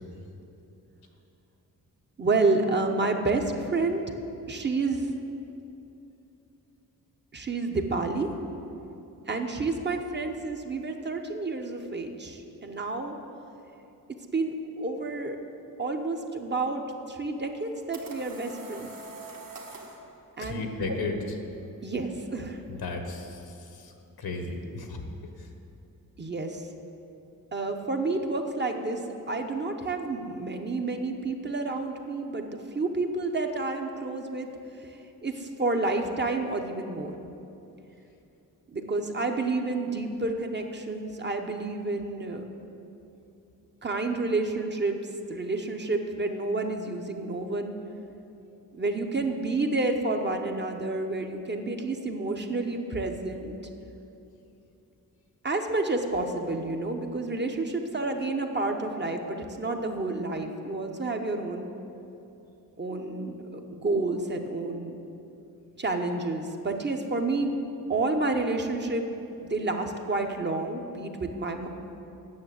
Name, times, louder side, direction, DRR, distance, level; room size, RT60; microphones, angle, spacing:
voice 1, 2.2-4.0 4.5-5.1 7.3-8.3 9.3-13.1 14.3-15.4 15.8-18.9 20.4-20.7 21.8-22.6 26.2-26.7 27.5-34.5 34.8-37.1 38.7-42.4 43.8-45.0 45.3-47.8 48.7-53.5 55.4-61.7 62.8-65.0 65.8-67.5 67.9-69.1 69.4-71.7, right 3 dB, 30° right, 4 dB, 0.8 m, -29 dB
sound 1, 17.5-20.0, right 3 dB, 60° right, 1.6 m, -44 dB
voice 2, 20.4-21.2 22.7-23.9 24.2-25.1, left 3 dB, 85° left, 4 dB, 1.3 m, -34 dB
9.6 x 6.8 x 7.8 m, 2.8 s
wide cardioid pair, 140°, 36 cm